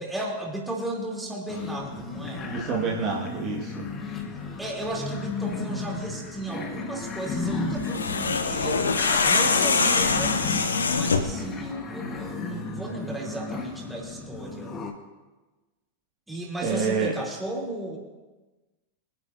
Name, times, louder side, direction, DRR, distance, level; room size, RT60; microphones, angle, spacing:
voice 1, 0.0-2.5 4.6-14.7 16.3-18.0, right 1 dB, 5° right, -2 dB, 3.2 m, -35 dB
sound 1, 1.5-14.9, left 3 dB, 25° left, 1.5 m, -34 dB
voice 2, 2.4-3.9 16.6-17.1, right 5 dB, 35° right, -2 dB, 1.9 m, -28 dB
sound 2, 7.8-11.4, left 4 dB, 70° left, 1.0 m, -23 dB
23.0 x 10.5 x 2.7 m, 1.2 s
figure-of-eight pair, 90°, 0 cm